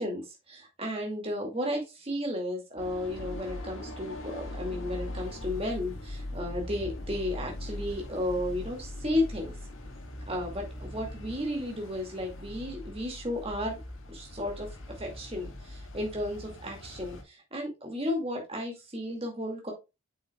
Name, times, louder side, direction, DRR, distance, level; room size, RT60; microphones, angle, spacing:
voice 1, 0.0-9.5 10.3-13.8 14.1-19.7, left 1 dB, 25° right, 0 dB, 2.3 m, -33 dB
sound 1, 2.8-17.2, left 1 dB, 65° left, 1.6 m, -41 dB
7.8 x 6.4 x 2.3 m, 0.24 s
head